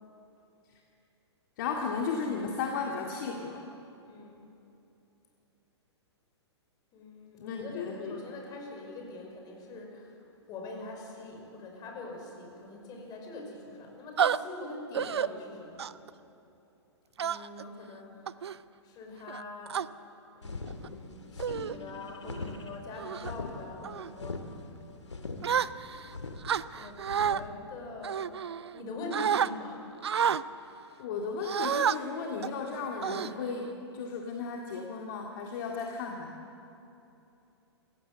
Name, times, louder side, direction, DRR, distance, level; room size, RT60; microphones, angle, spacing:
voice 1, 1.6-3.6 7.4-8.2 31.0-36.3, left 5 dB, 45° left, 1 dB, 2.2 m, -35 dB
voice 2, 4.0-4.4 6.9-15.9 17.2-18.4 18.8-19.8 20.3-24.7 25.1-25.9 26.7-28.3 28.7-30.2, left 2 dB, 25° left, 1 dB, 5.6 m, -44 dB
sound 1, 14.2-14.4 14.9-15.3 15.8-16.1 17.2-17.6 18.3-18.6 19.3-19.9 20.7-20.9 21.4-21.8 22.2-22.5 23.0-23.3 23.8-24.1 25.4-26.1 26.4-27.4 28.0-28.8 29.1-29.5 30.0-30.4 31.4-32.0 32.4-32.6 33.0-33.7, right 8 dB, 65° right, 0.6 m, -30 dB
sound 2, 20.4-27.5, left 3 dB, 80° left, 1.9 m, -41 dB
28.0 x 16.0 x 7.8 m, 2.8 s
figure-of-eight pair, 115°, 15 cm